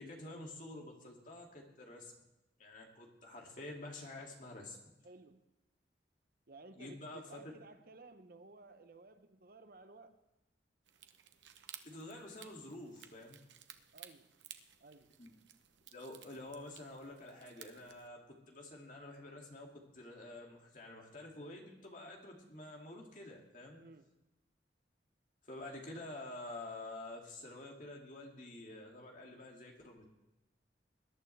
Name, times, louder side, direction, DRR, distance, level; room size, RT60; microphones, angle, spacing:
voice 1, 0.0-2.1 2.6-4.8 6.8-7.4 11.8-13.4 15.2-15.3 15.9-23.8 25.4-30.0, left 2 dB, 45° left, 0 dB, 2.5 m, -49 dB
voice 2, 5.0-5.4 6.5-10.2 13.9-14.3 14.8-15.1 23.7-24.1, right 3 dB, 55° right, 9 dB, 0.8 m, -56 dB
sound 1, 10.9-18.1, right 10 dB, 80° right, 0.9 m, -57 dB
20.5 x 11.0 x 3.4 m, 0.96 s
head